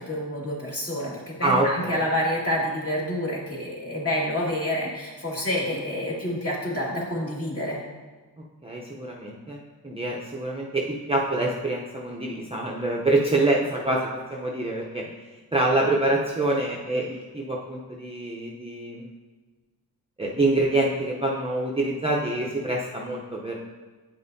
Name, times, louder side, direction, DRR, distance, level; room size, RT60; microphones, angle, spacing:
voice 1, 0.0-7.8, left 1 dB, 35° left, -5 dB, 2.2 m, -28 dB
voice 2, 1.4-2.0 8.6-15.1 15.5-19.0 20.2-23.6, right 2 dB, 15° right, -3 dB, 0.7 m, -26 dB
9.0 x 5.4 x 2.7 m, 1.3 s
cardioid pair, 80°, 40 cm